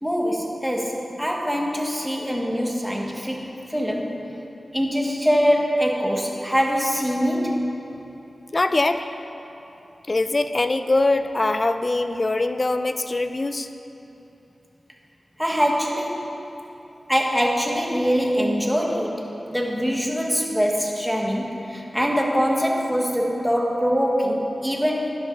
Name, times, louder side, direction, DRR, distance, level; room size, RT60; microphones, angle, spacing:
voice 1, 0.0-4.3 4.7-7.6 15.4-16.4 17.1-25.1, equal, ahead, 0 dB, 1.5 m, -23 dB
voice 2, 8.5-9.1 10.1-13.7, left 2 dB, 45° left, 9 dB, 0.5 m, -22 dB
12.5 x 10.5 x 4.0 m, 3.0 s
cardioid pair, 55°, 0 cm